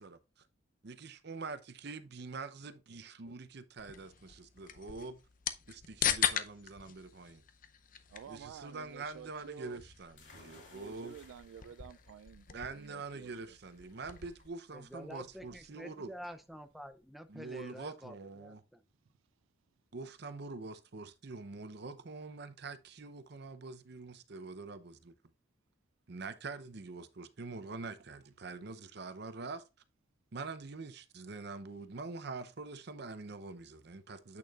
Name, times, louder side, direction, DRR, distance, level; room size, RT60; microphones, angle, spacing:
voice 1, 0.8-5.2 5.7-7.4 8.3-11.2 12.5-16.1 17.3-18.6 19.9-25.1 26.1-29.6 30.3-34.4, right 3 dB, 55° right, 0.7 m, -45 dB
sound 1, 3.8-14.5, left 9 dB, 45° left, 0.6 m, -40 dB
voice 2, 8.1-9.8 10.7-13.3, right 8 dB, 90° right, 0.3 m, -51 dB
sound 2, 10.2-17.6, left 2 dB, 60° left, 3.1 m, -62 dB
voice 3, 14.7-18.8, equal, ahead, 0.5 m, -48 dB
8.3 x 6.6 x 2.4 m
head